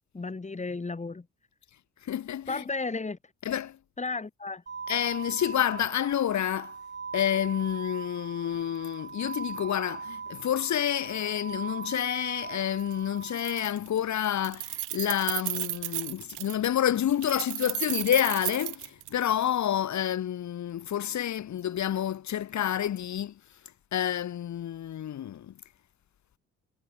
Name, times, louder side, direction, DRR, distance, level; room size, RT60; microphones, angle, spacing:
voice 1, 0.1-1.3 2.5-3.2 4.0-4.6, left 3 dB, 25° left, 5.5 m, -33 dB
voice 2, 2.0-2.6 3.5-3.8 4.9-6.7 7.1-23.3 23.9-25.5, left 10 dB, 70° left, 6.2 m, -29 dB
sound 1, 4.7-13.7, right 5 dB, 35° right, 5.6 m, -40 dB
Keys jangling, 12.8-12.9 13.2-14.0 14.2-16.7 17.2-19.5, right 18 dB, 90° right, 1.0 m, -34 dB
cardioid pair, 90°, 30 cm